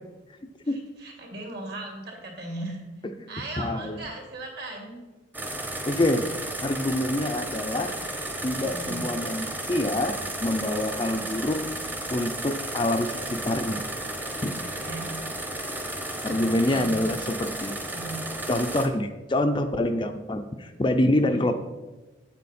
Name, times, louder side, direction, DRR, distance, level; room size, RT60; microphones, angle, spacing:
voice 1, 0.6-2.8 3.3-5.1 8.6-9.1 11.1-11.3 14.6-15.2 16.2-17.0 17.8-18.2 21.2-21.5, right 2 dB, 55° right, 1 dB, 2.5 m, -38 dB
voice 2, 3.6-4.0 5.9-6.3 6.6-7.9 8.4-11.6 12.1-13.8 14.4-14.6 16.2-17.7 18.5-21.5, left 1 dB, 25° left, 7 dB, 0.5 m, -26 dB
sound 1, 5.3-18.9, right 1 dB, 10° right, 0.8 m, -33 dB
9.1 x 8.3 x 4.3 m, 1.2 s
head